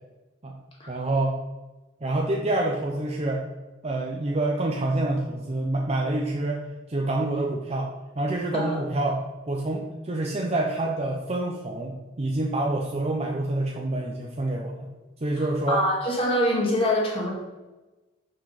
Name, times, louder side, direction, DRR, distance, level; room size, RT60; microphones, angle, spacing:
voice 1, 0.9-1.4 2.0-3.4 3.8-6.6 6.9-7.9 8.2-14.9 15.2-15.8, right 2 dB, 35° right, -1 dB, 0.7 m, -27 dB
voice 2, 15.7-17.3, equal, 30° left, -2 dB, 1.8 m, -24 dB
6.1 x 5.8 x 5.1 m, 1.1 s
head